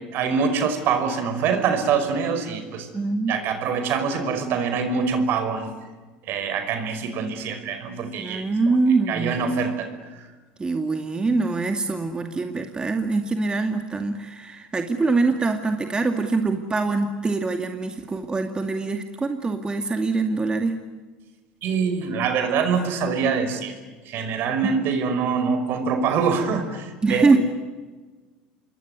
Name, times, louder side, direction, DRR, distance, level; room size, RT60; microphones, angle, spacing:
voice 1, 0.1-2.9 3.3-5.7 6.3-8.4 9.1-10.3 21.6-23.7 24.1-27.4, right 5 dB, 55° right, 9 dB, 5.4 m, -24 dB
voice 2, 2.9-3.4 8.2-9.4 10.6-20.8 24.6-24.7 27.0-27.4, right 3 dB, 20° right, 5 dB, 2.4 m, -24 dB
28.0 x 22.5 x 9.6 m, 1.3 s
hypercardioid pair, 90°, 4 cm